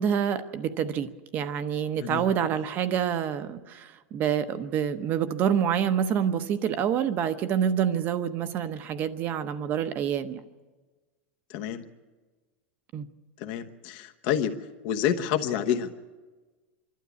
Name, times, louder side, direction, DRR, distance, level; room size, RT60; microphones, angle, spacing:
voice 1, 0.0-10.4 12.9-13.1, right 8 dB, 30° right, 11 dB, 0.9 m, -27 dB
voice 2, 11.5-11.8 13.4-14.5 14.8-15.9, left 9 dB, 50° left, 5 dB, 1.1 m, -28 dB
26.0 x 12.5 x 8.3 m, 1.3 s
supercardioid pair, 165°, 6 cm